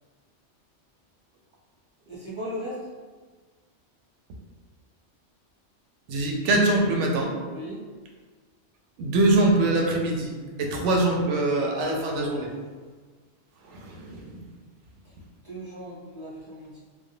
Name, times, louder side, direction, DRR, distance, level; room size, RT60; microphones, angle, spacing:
voice 1, 2.1-2.8 7.5-7.8 15.4-16.8, equal, 35° right, -8 dB, 0.5 m, -37 dB
voice 2, 6.1-7.3 9.0-10.3 10.6-12.5 13.7-14.3, right 2 dB, 75° right, 1 dB, 0.9 m, -23 dB
3.2 x 2.1 x 2.7 m, 1.4 s
omnidirectional pair, 1.3 m